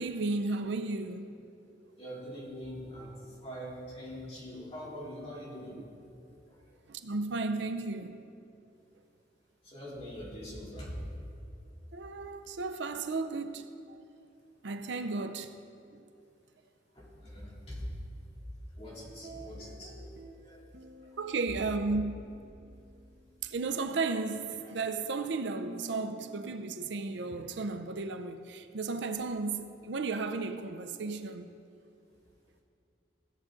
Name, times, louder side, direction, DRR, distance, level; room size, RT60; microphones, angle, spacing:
voice 1, 0.0-1.3 6.9-8.2 11.9-13.7 14.6-15.5 21.2-22.1 23.4-31.5, right 3 dB, 75° right, 0.5 m, -34 dB
voice 2, 2.0-6.1 6.5-6.6 9.6-11.0 16.9-17.9 18.8-20.1 20.4-20.7, equal, 30° left, 2.6 m, -43 dB
sound 1, 19.0-20.4 20.7-23.5 23.7-28.1, right 2 dB, 60° right, 1.0 m, -52 dB
16.5 x 7.4 x 3.8 m
head